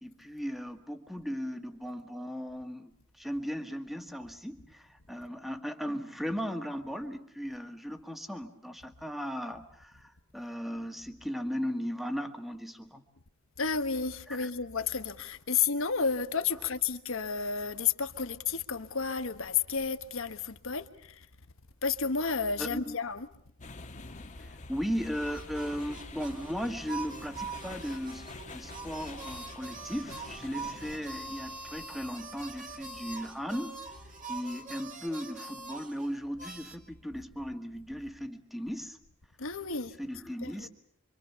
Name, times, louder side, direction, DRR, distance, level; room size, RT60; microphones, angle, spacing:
voice 1, 0.0-13.0 14.3-14.5 22.6-23.0 24.4-33.8 34.3-39.0 40.0-40.7, equal, ahead, 1.7 m, -37 dB
voice 2, 13.6-21.3 21.8-23.3 24.4-24.5 39.4-40.0 40.4-40.7, left 5 dB, 70° left, 1.3 m, -31 dB
sound 1, 23.6-35.7, left 2 dB, 35° left, 1.3 m, -48 dB
sound 2, 25.1-36.8, right 4 dB, 40° right, 2.4 m, -44 dB
26.0 x 25.0 x 7.0 m
head